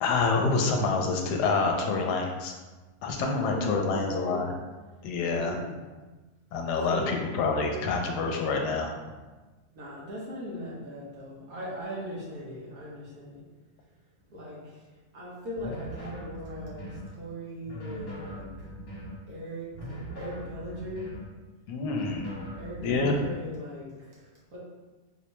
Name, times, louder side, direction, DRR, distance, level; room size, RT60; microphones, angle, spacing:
voice 1, 0.0-2.5 3.0-4.5 5.0-5.6 6.5-8.9 21.7-22.3 22.8-23.1, left 4 dB, 80° left, 2 dB, 1.1 m, -27 dB
voice 2, 3.2-4.4 5.3-5.8 6.8-7.2 9.7-13.4 14.3-14.8 15.1-18.5 19.3-21.1 22.6-24.6, equal, 65° right, -6 dB, 1.4 m, -38 dB
sound 1, 15.6-17.1 17.6-19.2 19.7-21.3 21.8-23.4, equal, 60° left, 1.4 m, -40 dB
4.4 x 2.2 x 2.9 m, 1.2 s
omnidirectional pair, 1.7 m